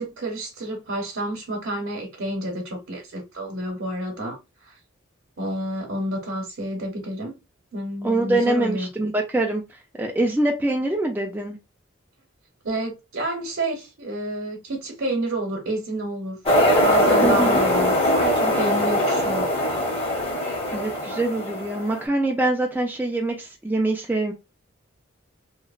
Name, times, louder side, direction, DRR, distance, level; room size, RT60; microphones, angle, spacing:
voice 1, 0.0-4.7 5.4-7.4 7.7-8.9 12.6-16.4 16.8-19.5, right 1 dB, 70° right, 0.8 m, -29 dB
voice 2, 8.0-9.6 10.0-11.6 17.2-17.6 20.7-24.3, right 2 dB, 10° right, 0.3 m, -24 dB
sound 1, 16.5-22.0, left 1 dB, 30° left, 0.7 m, -21 dB
2.9 x 2.0 x 2.4 m
head